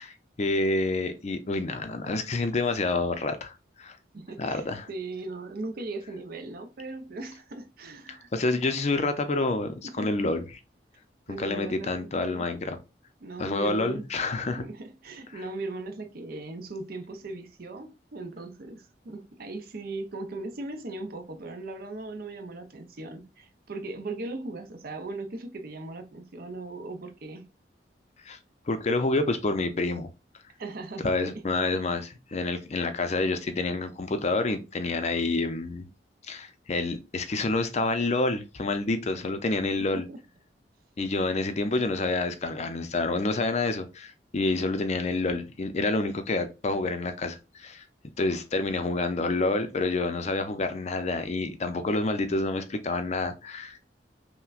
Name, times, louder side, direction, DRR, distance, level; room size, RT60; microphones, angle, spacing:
voice 1, 0.0-4.0 4.4-4.9 8.1-10.6 11.3-12.8 13.4-14.7 15.3-15.4 28.3-28.4 28.7-30.1 31.0-35.9 36.2-40.0 41.0-47.8 48.2-53.9, left 2 dB, 40° left, 0.5 m, -28 dB
voice 2, 4.1-8.3 9.8-10.1 11.3-12.5 13.2-14.1 14.6-27.5 30.6-31.3 39.9-40.2, right 2 dB, 60° right, 0.6 m, -38 dB
5.7 x 2.1 x 2.4 m
head